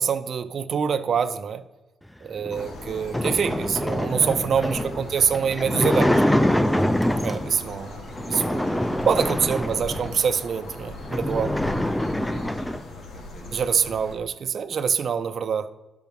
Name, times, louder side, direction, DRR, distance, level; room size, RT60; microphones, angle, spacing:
voice 1, 0.0-1.6 2.2-6.1 7.2-8.0 8.3-8.7 9.1-11.5 13.5-15.7, right 7 dB, 55° right, 10 dB, 0.6 m, -25 dB
sound 1, 2.4-7.6 8.2-10.2 10.7-10.8 11.0-12.9, left 1 dB, 5° left, 0.4 m, -25 dB
sound 2, 2.5-14.2, left 2 dB, 70° left, 1.7 m, -39 dB
voice 2, 5.6-6.6 9.6-10.0 12.2-13.6, left 1 dB, 35° left, 2 dB, 1.9 m, -41 dB
12.0 x 6.0 x 5.3 m, 1.1 s
cardioid pair, 125°, 0 cm